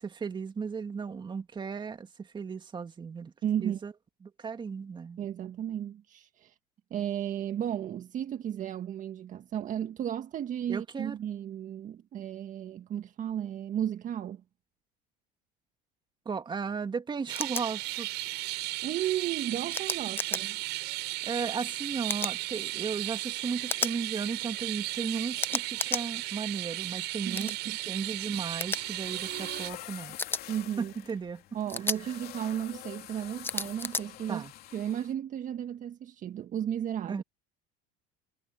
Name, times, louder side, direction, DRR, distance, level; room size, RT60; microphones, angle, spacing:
voice 1, 0.0-3.3 3.6-3.9 4.2-5.2 10.7-11.1 16.3-18.1 18.3-18.5 21.2-30.2 30.8-31.4 34.3-34.5 37.1-37.2, right 5 dB, 25° right, 2.4 m, -35 dB
voice 2, 3.4-3.8 5.2-6.5 6.9-14.4 18.8-20.6 27.3-27.8 30.5-30.9 31.5-34.4 34.7-37.2, right 10 dB, 45° right, 1.7 m, -34 dB
sound 1, 17.3-29.7, right 21 dB, 70° right, 5.6 m, -35 dB
sound 2, 17.4-17.6 19.7-20.4 22.1-22.3 23.7-23.9 25.4-26.0 27.3-27.5 28.6-28.8 30.2-30.4 31.7-32.0 33.4-34.0, left 3 dB, 10° left, 0.9 m, -32 dB
sound 3, 28.3-35.1, left 14 dB, 60° left, 3.0 m, -47 dB
supercardioid pair, 105°, 18 cm